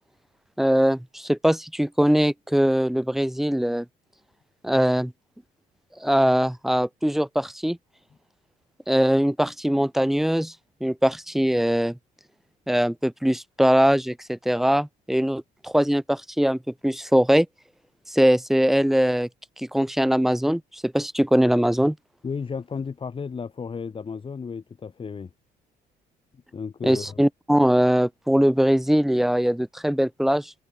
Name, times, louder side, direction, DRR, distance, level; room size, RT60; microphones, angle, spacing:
voice 1, 0.6-3.9 4.6-5.1 6.0-7.8 8.9-10.5 10.8-12.0 12.7-17.5 18.1-19.3 19.6-22.0 26.8-30.5, equal, ahead, 0.4 m, -21 dB
voice 2, 22.2-25.3 26.5-27.2, left 5 dB, 30° left, 6.1 m, -33 dB
cardioid pair, 110°, 17 cm